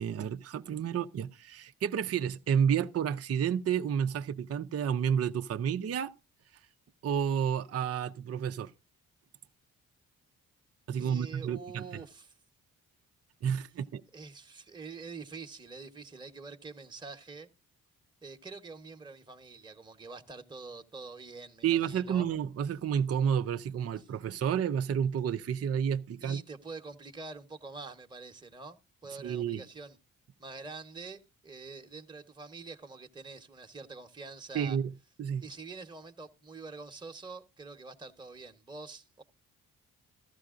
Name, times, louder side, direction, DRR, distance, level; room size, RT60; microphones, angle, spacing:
voice 1, 0.0-6.1 7.0-8.7 10.9-11.8 13.4-14.0 21.6-26.4 29.2-29.6 34.5-34.9 35.2-35.4, right 8 dB, 40° right, 0.6 m, -30 dB
voice 2, 10.9-12.3 14.1-17.5 18.2-22.3 26.2-30.0 30.4-34.8 35.4-39.2, right 4 dB, 10° right, 1.1 m, -46 dB
14.5 x 13.0 x 2.5 m
hypercardioid pair, 45°, 38 cm